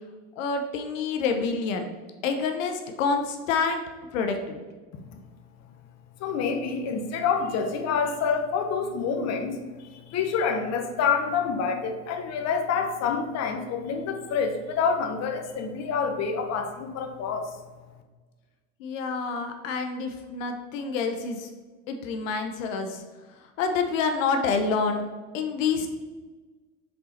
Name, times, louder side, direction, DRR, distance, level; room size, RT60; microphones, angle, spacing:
voice 1, 0.4-1.9 2.2-3.8 4.1-4.6 18.8-21.5 21.9-23.0 23.3-25.0 25.3-25.9, left 5 dB, 90° left, 5 dB, 0.9 m, -27 dB
voice 2, 6.2-17.5, left 5 dB, 45° left, 5 dB, 0.9 m, -27 dB
5.3 x 4.3 x 4.2 m, 1.3 s
supercardioid pair, 110°, 38 cm